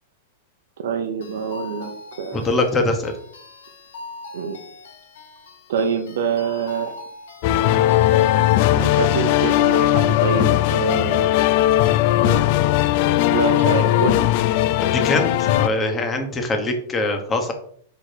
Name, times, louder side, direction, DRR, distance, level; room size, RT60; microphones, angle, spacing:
voice 1, 0.8-1.9 2.2-2.6 4.3-4.6 5.7-6.9 8.7-11.3 12.2-12.5 13.3-14.3, right 6 dB, 75° right, 4 dB, 0.9 m, -26 dB
sound 1, 1.2-10.3, left 3 dB, 85° left, 3.1 m, -41 dB
voice 2, 2.3-3.1 14.8-15.3 15.6-17.5, left 2 dB, 15° left, 5 dB, 1.2 m, -22 dB
sound 2, 7.4-15.7, left 14 dB, 45° left, 0.3 m, -18 dB
6.0 x 5.1 x 4.6 m, 0.62 s
supercardioid pair, 160°, 0 cm